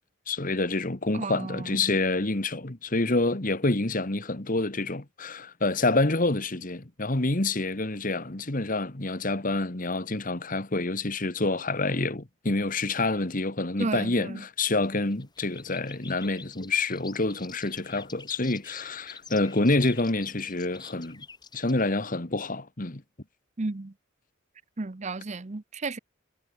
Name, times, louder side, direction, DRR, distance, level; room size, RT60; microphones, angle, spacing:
voice 1, 0.3-21.2 21.5-23.0, left 2 dB, 40° left, 1.7 m, -27 dB
voice 2, 1.1-1.8 13.8-14.4 23.6-23.9 24.8-26.0, right 3 dB, 35° right, 0.7 m, -33 dB
sound 1, 14.8-21.9, left 5 dB, 20° left, 7.4 m, -47 dB
head